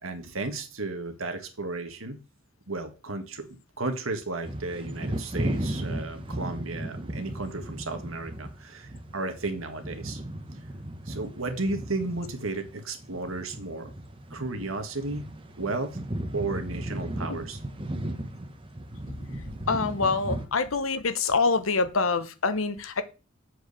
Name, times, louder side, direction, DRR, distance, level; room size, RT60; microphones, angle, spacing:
voice 1, 0.0-2.2 2.7-10.2 11.1-13.9 14.3-15.3 15.6-16.0 16.3-17.6, right 2 dB, 90° right, 1.8 m, -33 dB
sound 1, 4.4-12.7 13.0-20.5, right 1 dB, 25° right, 1.1 m, -36 dB
voice 2, 19.3-23.0, left 4 dB, 80° left, 1.0 m, -26 dB
7.8 x 4.8 x 6.6 m
head